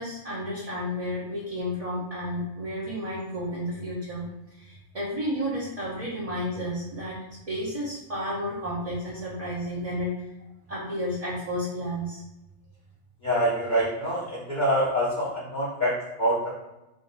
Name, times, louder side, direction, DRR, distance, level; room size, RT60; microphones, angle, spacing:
voice 1, 0.0-4.2 4.5-7.2 7.5-10.3 10.7-12.2, equal, 35° right, -7 dB, 0.8 m, -32 dB
voice 2, 13.2-16.6, equal, 40° left, -9 dB, 0.9 m, -26 dB
3.6 x 2.6 x 4.0 m, 0.98 s
omnidirectional pair, 1.3 m